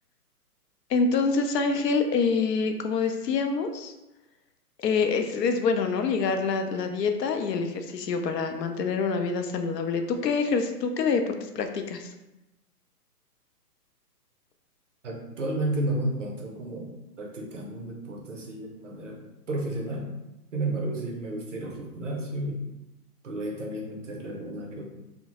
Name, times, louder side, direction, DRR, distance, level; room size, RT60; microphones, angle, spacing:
voice 1, 0.9-3.9 4.8-12.1, left 4 dB, 85° left, 6 dB, 0.6 m, -26 dB
voice 2, 15.0-16.9 17.2-19.2 19.5-20.1 20.5-22.6 23.2-24.8, right 1 dB, 55° right, 1 dB, 0.5 m, -32 dB
2.7 x 2.1 x 2.9 m, 0.97 s
hypercardioid pair, 175°, 48 cm